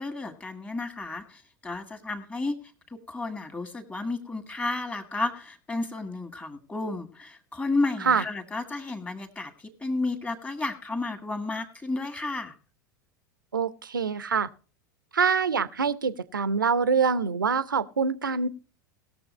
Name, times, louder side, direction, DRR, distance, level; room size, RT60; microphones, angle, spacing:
voice 1, 0.0-2.6 2.9-12.6, left 2 dB, 15° left, 2.0 m, -32 dB
voice 2, 13.5-14.5 15.1-18.5, right 5 dB, 80° right, 0.7 m, -25 dB
19.0 x 7.1 x 4.2 m
figure-of-eight pair, 85°, 11 cm